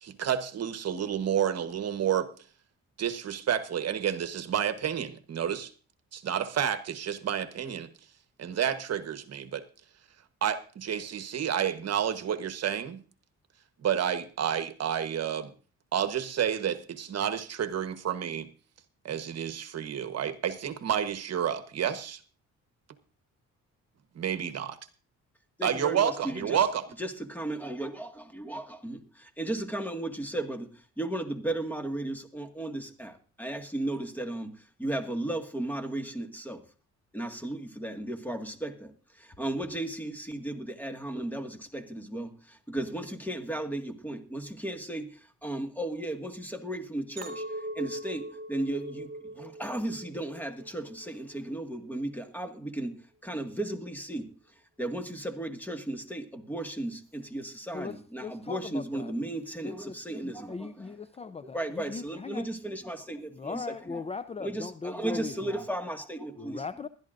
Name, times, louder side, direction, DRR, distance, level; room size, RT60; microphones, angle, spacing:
voice 1, 0.0-2.3 3.0-5.7 6.1-7.9 8.4-9.6 10.4-13.0 13.8-15.5 15.9-18.5 19.0-22.2 24.1-24.8 25.6-26.8, right 9 dB, 55° right, 1.2 m, -30 dB
voice 2, 25.6-26.7 27.0-30.7 31.0-36.6 37.1-54.3 54.8-60.9 61.5-64.0 64.4-66.6, right 1 dB, 5° left, 1.9 m, -35 dB
Chink clink, 47.2-51.5 52.0-52.4, right 1 dB, 30° right, 4.2 m, -41 dB
voice 3, 57.7-59.1 59.6-62.5 63.3-65.6 66.4-66.9, left 4 dB, 20° left, 0.5 m, -39 dB
20.0 x 12.0 x 2.6 m
cardioid pair, 90°, 30 cm